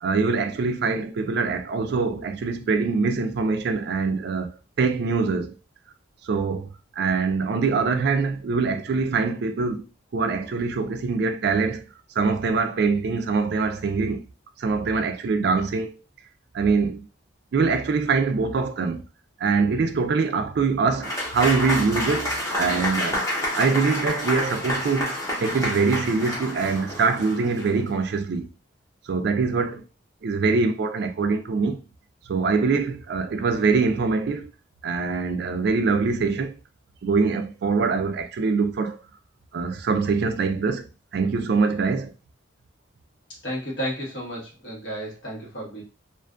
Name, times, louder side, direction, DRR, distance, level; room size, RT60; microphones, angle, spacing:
voice 1, 0.0-4.5 4.8-5.5 6.2-9.9 10.1-11.8 12.2-14.2 14.6-16.0 16.5-17.1 17.5-19.0 19.4-23.3 23.6-28.5 29.1-29.8 30.2-31.8 32.3-34.5 34.8-36.6 37.0-39.0 39.5-40.9 41.1-42.1, right 4 dB, 55° right, 0.3 m, -24 dB
Applause / Crowd, 21.0-27.8, left 1 dB, 15° left, 0.8 m, -28 dB
voice 2, 43.3-45.8, equal, 65° left, 1.2 m, -32 dB
2.5 x 2.4 x 2.3 m
head